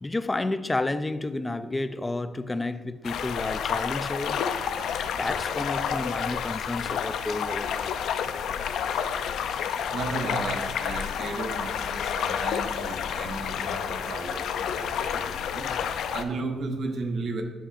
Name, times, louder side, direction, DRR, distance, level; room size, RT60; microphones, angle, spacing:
voice 1, 0.0-4.4 5.1-7.8 8.8-9.3 15.6-15.7, left 2 dB, 15° left, 0.4 m, -31 dB
sound 1, 3.0-16.2, left 8 dB, 80° left, 0.4 m, -30 dB
voice 2, 9.9-15.7 16.1-17.4, right 3 dB, 55° right, 1.0 m, -34 dB
12.5 x 5.6 x 2.5 m
cardioid pair, 115°, 0 cm